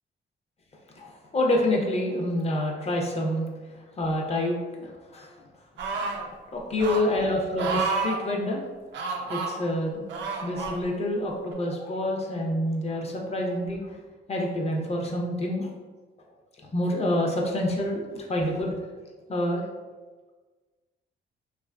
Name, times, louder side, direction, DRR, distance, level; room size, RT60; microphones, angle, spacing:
voice 1, 1.0-3.5 4.0-5.4 6.5-8.6 9.3-10.0 10.4-13.8 14.3-15.7 16.7-18.7 19.3-19.6, left 1 dB, 30° left, 0 dB, 0.5 m, -27 dB
sound 1, 5.8-6.3 6.8-7.0 7.6-8.2 8.9-9.5 10.1-10.8 11.5-11.6, right 4 dB, 65° right, 0.5 m, -30 dB
2.7 x 2.4 x 2.2 m, 1.3 s
cardioid pair, 90°, 20 cm